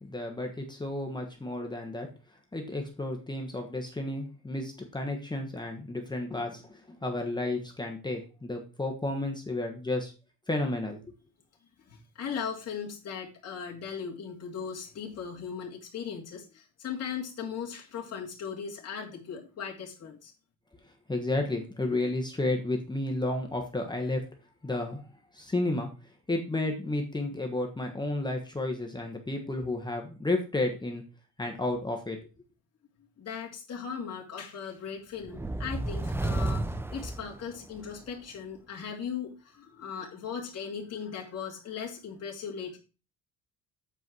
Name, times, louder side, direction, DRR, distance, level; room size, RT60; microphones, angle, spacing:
voice 1, 0.0-2.1 2.5-10.1 10.5-11.0 21.1-24.2 24.6-25.0 25.3-25.9 26.3-31.0 31.4-32.2, left 2 dB, 10° left, 2 dB, 1.3 m, -32 dB
voice 2, 11.8-20.3 33.2-42.8, left 7 dB, 40° left, -2 dB, 2.5 m, -38 dB
sound 1, 35.2-38.0, right 2 dB, 5° right, 0.4 m, -32 dB
8.1 x 4.6 x 6.1 m, 0.33 s
cardioid pair, 145°, 38 cm